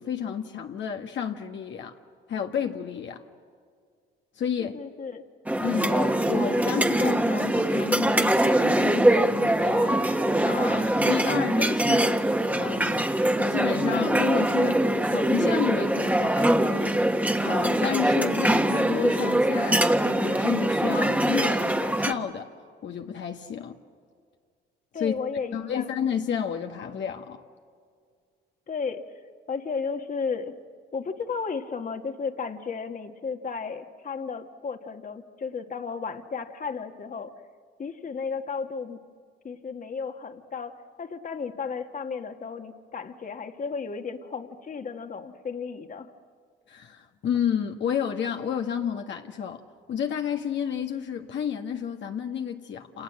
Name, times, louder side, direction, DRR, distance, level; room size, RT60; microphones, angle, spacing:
voice 1, 0.0-2.0 2.3-3.2 4.4-4.8 5.6-10.0 10.4-12.3 12.6-13.1 13.4-17.0 17.4-22.5 22.8-23.8 24.9-25.2 25.5-27.4 46.7-49.6 49.9-53.0, left 8 dB, 65° left, 1.5 m, -31 dB
voice 2, 4.6-5.2 24.9-25.9 28.7-29.0 29.5-30.6 30.9-37.4 37.8-39.0 39.4-46.1, left 5 dB, 40° left, 1.8 m, -34 dB
sound 1, 5.5-22.1, right 1 dB, 5° right, 1.5 m, -23 dB
28.5 x 28.0 x 7.6 m
cardioid pair, 90°, 20 cm